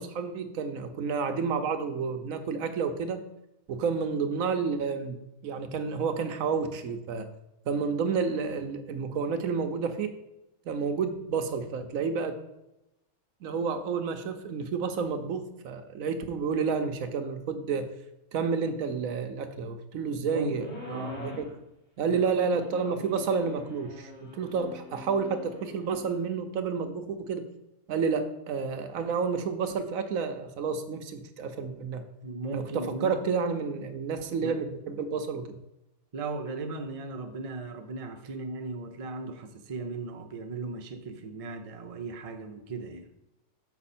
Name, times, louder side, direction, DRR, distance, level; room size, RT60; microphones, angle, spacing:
voice 1, 0.0-3.2 3.7-5.2 5.4-7.3 7.7-10.1 10.7-12.4 13.4-17.9 18.3-21.4 22.0-27.4 27.9-32.0 32.5-35.5, right 5 dB, 70° right, 8 dB, 1.1 m, -30 dB
voice 2, 20.3-21.6 22.1-22.4 32.2-33.2 34.4-34.6 36.1-43.1, right 3 dB, 45° right, 5 dB, 0.4 m, -37 dB
sound 1, 20.6-21.5 22.4-26.1, left 3 dB, 45° left, 2.2 m, -44 dB
7.0 x 5.1 x 4.2 m, 0.89 s
omnidirectional pair, 1.5 m